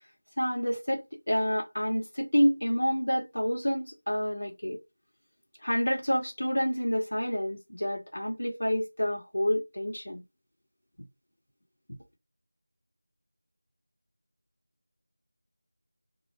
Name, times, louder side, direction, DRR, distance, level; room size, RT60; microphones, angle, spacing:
voice 1, 0.4-4.8 5.6-10.2, equal, 80° left, 1.0 m, -28 dB
2.4 x 2.2 x 3.2 m
figure-of-eight pair, 170°, 0 cm